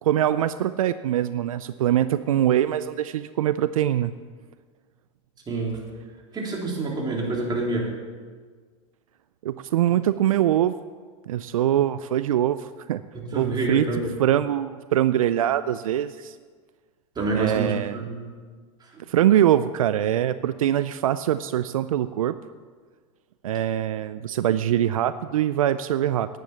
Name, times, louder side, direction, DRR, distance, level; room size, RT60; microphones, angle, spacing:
voice 1, 0.0-4.1 9.4-10.8 11.3-13.0 13.4-13.8 14.2-16.3 17.3-18.0 19.1-22.4 23.4-26.3, right 11 dB, 85° right, 14 dB, 0.4 m, -23 dB
voice 2, 5.5-5.8 6.3-7.9 13.1-14.1 17.2-18.2 18.8-19.0, right 2 dB, 25° right, -2 dB, 3.6 m, -27 dB
10.0 x 9.2 x 7.2 m, 1.5 s
hypercardioid pair, 105°, 17 cm